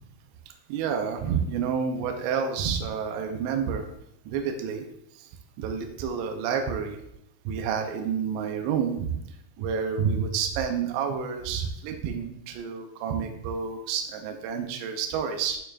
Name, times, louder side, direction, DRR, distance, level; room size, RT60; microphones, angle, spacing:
voice 1, 0.7-3.9 4.3-4.8 5.1-5.3 5.6-7.0 7.5-9.2 9.6-15.6, right 7 dB, 85° right, 4 dB, 2.6 m, -29 dB
11.0 x 4.6 x 2.5 m, 0.78 s
omnidirectional pair, 5.7 m